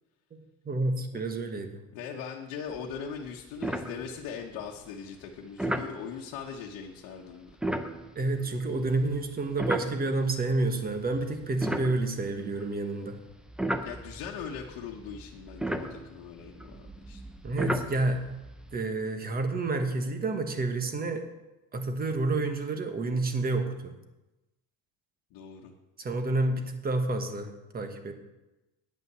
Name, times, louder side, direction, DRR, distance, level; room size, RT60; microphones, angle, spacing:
voice 1, 0.3-1.8 8.1-13.2 17.4-18.2 18.7-21.3 21.7-23.9 26.0-28.1, right 2 dB, 25° right, 6 dB, 1.2 m, -29 dB
voice 2, 1.9-7.5 13.8-17.2 25.3-25.7, left 7 dB, 75° left, -1 dB, 1.2 m, -40 dB
sound 1, 2.7-3.0 3.3-3.4 3.6-4.5 5.6-6.0 7.5-10.4 11.0-12.8 13.3-18.8, right 1 dB, ahead, 0.6 m, -34 dB
9.4 x 5.5 x 8.2 m, 1.0 s
cardioid pair, 125°, 34 cm